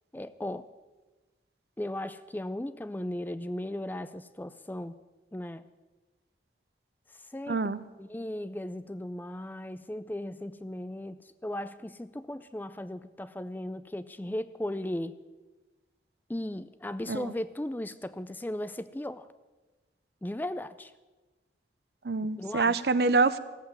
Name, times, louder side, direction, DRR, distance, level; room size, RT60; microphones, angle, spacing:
voice 1, 0.1-0.7 1.8-4.9 5.3-5.6 7.1-7.6 8.0-15.2 16.3-19.3 20.2-20.9 22.4-22.8, left 1 dB, 10° left, 14 dB, 0.4 m, -36 dB
voice 2, 7.5-7.8 17.1-17.3 22.0-23.4, right 3 dB, 65° right, 15 dB, 0.6 m, -26 dB
15.5 x 8.1 x 9.2 m, 1.2 s
head